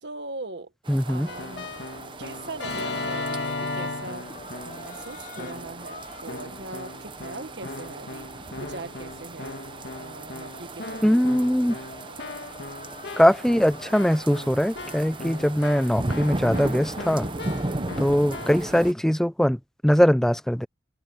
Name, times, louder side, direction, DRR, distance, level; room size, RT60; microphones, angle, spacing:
voice 1, 0.0-0.7 1.0-1.7 2.2-9.6 9.9-11.2 17.6-18.0, right 2 dB, 70° right, 1.6 m, -40 dB
sound 1, 0.8-18.9, right 2 dB, 25° right, 0.9 m, -37 dB
voice 2, 0.9-1.3 11.0-11.8 13.2-17.3 18.0-20.7, equal, 5° left, 0.4 m, -21 dB
Keyboard (musical), 1.3-4.9 5.4-5.9 6.3-18.8, left 2 dB, 70° left, 2.0 m, -37 dB
sound 2, 1.9-17.4, left 3 dB, 45° left, 3.7 m, -49 dB
head